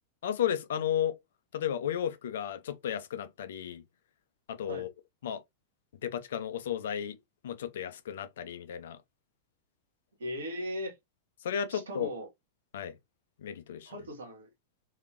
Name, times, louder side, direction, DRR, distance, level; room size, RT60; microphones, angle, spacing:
voice 1, 0.2-1.2 1.5-3.8 4.5-4.9 5.2-5.4 6.0-7.2 7.4-9.0 11.4-12.1 12.7-13.0 13.4-13.9, left 9 dB, 60° left, 0.6 m, -33 dB
voice 2, 10.2-10.9 11.7-12.3 13.8-14.5, equal, 65° right, 1.6 m, -38 dB
3.7 x 3.4 x 3.1 m
figure-of-eight pair, 90°, 0 cm